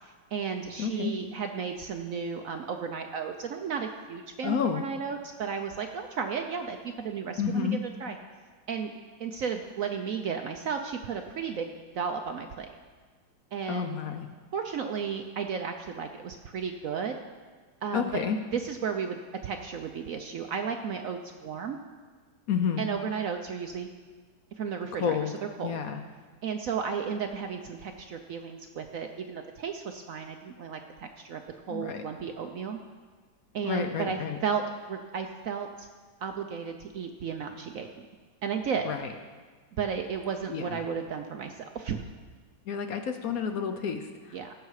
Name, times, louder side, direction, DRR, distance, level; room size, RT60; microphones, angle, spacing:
voice 1, 0.0-8.2 8.7-8.9 9.2-12.7 13.5-14.0 14.5-17.2 17.8-18.2 18.5-19.2 19.4-21.8 22.8-23.9 24.6-25.3 25.6-25.8 26.4-31.4 31.7-32.8 33.5-34.6 34.9-35.9 36.2-37.9 38.4-38.9 39.8-42.0 44.3-44.6, right 6 dB, 65° right, 5 dB, 0.9 m, -34 dB
voice 2, 0.8-1.1 4.4-4.9 7.4-7.8 13.7-14.3 17.9-18.4 22.5-22.8 25.0-25.3 25.6-26.0 31.7-32.0 33.6-34.4 38.8-39.1 40.5-40.8 42.7-44.6, left 7 dB, 65° left, 6 dB, 1.0 m, -30 dB
17.0 x 6.7 x 4.8 m, 1.4 s
omnidirectional pair, 1.9 m